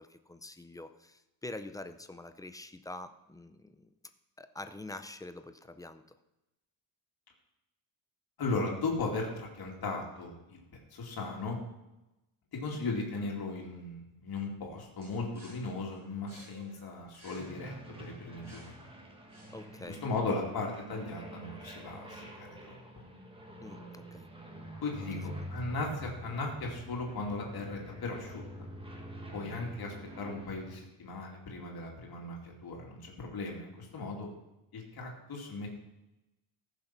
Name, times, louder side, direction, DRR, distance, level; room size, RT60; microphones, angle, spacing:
voice 1, 0.0-3.9 4.4-6.0 19.5-20.0 23.6-24.3 29.5-29.6, left 2 dB, 10° left, 9 dB, 0.4 m, -45 dB
voice 2, 8.4-10.6 10.9-11.6 12.5-18.9 19.9-23.0 24.8-28.4 29.3-34.3 34.7-35.7, left 3 dB, 50° left, -1 dB, 2.6 m, -37 dB
sound 1, 15.0-19.9, right 2 dB, 35° right, 5.5 m, -57 dB
sound 2, 17.4-30.8, right 1 dB, 10° right, 1.6 m, -46 dB
14.5 x 6.8 x 5.9 m, 0.95 s
wide cardioid pair, 180°, 46 cm